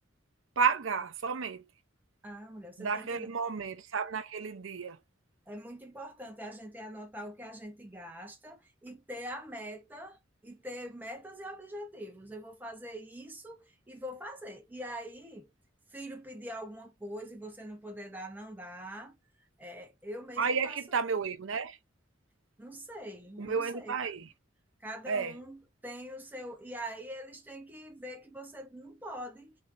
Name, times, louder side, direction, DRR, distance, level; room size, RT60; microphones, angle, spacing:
voice 1, 0.6-1.6 2.8-5.0 20.4-21.8 23.4-24.3 25.1-25.3, right 5 dB, 75° right, 0.6 m, -31 dB
voice 2, 2.2-3.3 5.5-15.5 15.9-19.2 19.6-21.0 22.6-24.0 24.8-29.6, equal, 10° right, 0.9 m, -43 dB
3.5 x 3.2 x 2.6 m
head